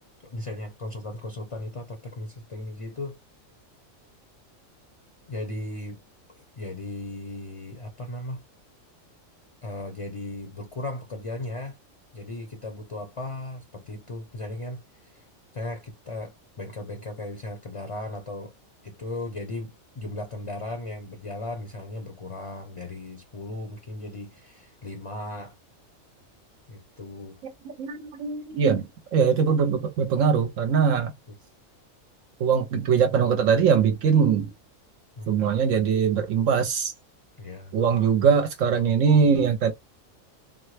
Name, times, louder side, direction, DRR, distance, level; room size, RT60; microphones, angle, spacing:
voice 1, 0.0-3.2 5.3-6.0 6.3-8.4 9.6-11.8 12.1-15.3 15.5-18.5 18.8-25.6 26.7-27.4 35.2-35.4 37.4-37.8, left 2 dB, 35° left, 0.6 m, -36 dB
voice 2, 27.8-31.1 32.4-34.5 35.3-36.9 37.7-39.7, right 6 dB, 70° right, 0.9 m, -22 dB
3.7 x 2.1 x 3.2 m
omnidirectional pair, 1.4 m